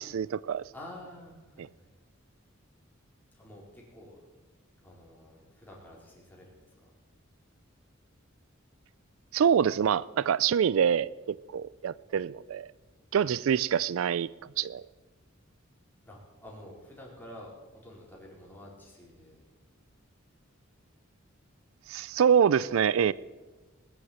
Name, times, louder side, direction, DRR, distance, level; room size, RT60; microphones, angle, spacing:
voice 1, 0.1-0.6 9.3-12.7 13.1-14.3 14.6-14.8 21.9-23.1, right 8 dB, 75° right, 0.4 m, -25 dB
voice 2, 0.7-1.9 3.3-4.2 4.8-6.7 13.2-13.5 16.0-17.5 17.8-19.4, left 1 dB, 10° left, 4.4 m, -49 dB
20.0 x 7.9 x 8.0 m
head